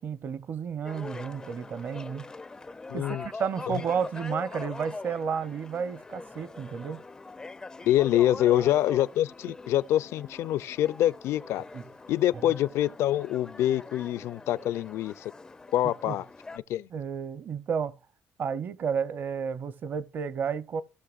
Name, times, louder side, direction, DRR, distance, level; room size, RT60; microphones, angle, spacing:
voice 1, 0.0-2.2 2.9-7.0 8.5-8.6 11.7-11.8 12.4-12.5 16.1-16.2 16.9-17.9 18.4-20.8, right 6 dB, 40° right, 0.7 m, -32 dB
sound 1, 0.8-16.6, left 3 dB, 15° left, 0.4 m, -42 dB
voice 2, 2.9-3.3 3.7-3.8 7.9-11.6 12.1-15.3 15.7-16.2 16.7-16.9, left 13 dB, 70° left, 0.5 m, -25 dB
16.5 x 6.5 x 2.4 m
cardioid pair, 145°, 5 cm